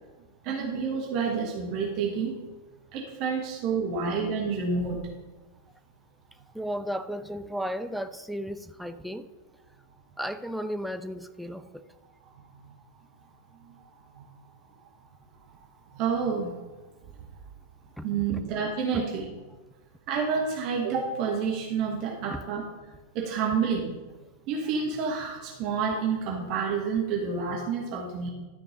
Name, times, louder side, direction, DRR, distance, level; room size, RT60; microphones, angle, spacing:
voice 1, 0.4-2.4 2.9-5.0 12.6-12.7 14.1-14.2 15.9-16.5 18.0-19.3 20.1-22.6 23.1-24.0 24.5-28.3, right 5 dB, 40° right, -1 dB, 1.3 m, -29 dB
voice 2, 6.3-9.3 10.2-11.8 18.0-18.4 18.9-19.0 22.3-22.4, equal, ahead, 9 dB, 0.4 m, -34 dB
12.5 x 4.6 x 5.1 m, 1.2 s
figure-of-eight pair, 90°, 0 cm